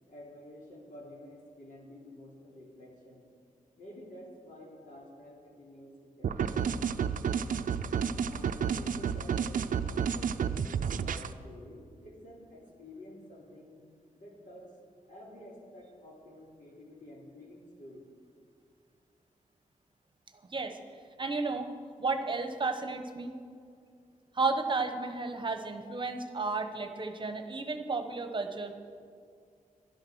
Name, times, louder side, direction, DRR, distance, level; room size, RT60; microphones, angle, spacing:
voice 1, 0.1-3.3 3.8-7.5 8.2-13.9 14.1-14.7 15.1-18.1, left 1 dB, 70° left, -2 dB, 3.3 m, -50 dB
sound 1, 6.2-11.3, right 7 dB, 70° right, 0.5 m, -31 dB
voice 2, 21.2-21.7 22.0-23.3 24.3-28.7, right 3 dB, 35° right, 6 dB, 1.1 m, -32 dB
12.5 x 11.5 x 6.3 m, 2.3 s
wide cardioid pair, 115°, 14 cm